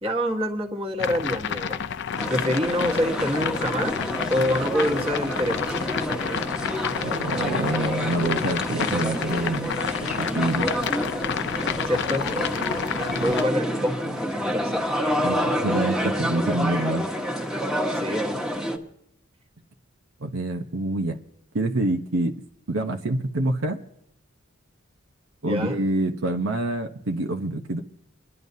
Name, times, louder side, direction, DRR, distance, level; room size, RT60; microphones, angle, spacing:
voice 1, 0.0-1.8 2.3-4.0 4.3-5.8 11.8-12.3 13.2-14.9 17.9-18.4 25.4-25.8, equal, 30° right, 2 dB, 1.5 m, -26 dB
sound 1, 1.0-13.4, left 7 dB, 60° left, 0.5 m, -30 dB
sound 2, 2.2-18.8, equal, 5° right, 1.1 m, -28 dB
voice 2, 7.0-9.7 10.2-10.7 13.1-13.2 15.2-17.1 20.2-21.2 21.5-22.4 22.7-23.8 25.4-27.8, right 2 dB, 75° right, 4 dB, 0.9 m, -26 dB
28.5 x 11.0 x 2.7 m, 0.79 s
head